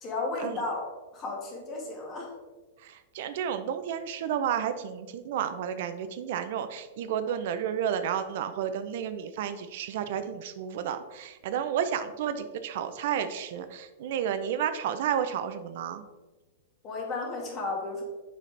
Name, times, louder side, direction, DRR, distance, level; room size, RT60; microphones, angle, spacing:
voice 1, 0.0-0.8 1.1-2.3 16.8-18.0, left 3 dB, 25° left, -1 dB, 1.7 m, -33 dB
voice 2, 2.8-16.0, right 9 dB, 55° right, 10 dB, 0.5 m, -31 dB
7.5 x 5.5 x 3.3 m, 1.2 s
supercardioid pair, 160°, 0 cm